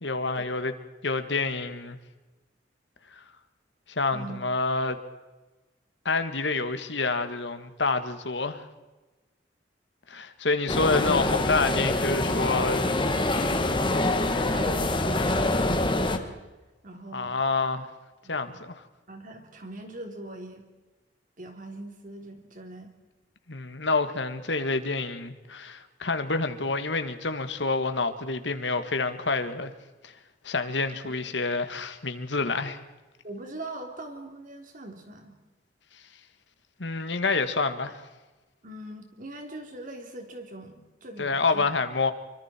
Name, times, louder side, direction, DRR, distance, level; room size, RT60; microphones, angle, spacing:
voice 1, 0.0-0.7 1.0-2.0 3.9-5.0 6.1-8.6 10.1-12.8 17.1-17.9 18.3-18.7 23.5-29.7 30.4-32.8 36.8-38.0 41.2-42.1, left 3 dB, 85° left, 9 dB, 1.8 m, -28 dB
sound 1, 10.7-16.2, left 2 dB, 30° left, 1.7 m, -25 dB
voice 2, 14.3-16.4 16.8-17.4 18.2-18.6 19.1-20.7 21.4-22.9 31.0-31.1 33.2-35.4 38.6-41.6, right 1 dB, 50° right, 4 dB, 3.5 m, -41 dB
25.0 x 24.5 x 4.5 m, 1.2 s
head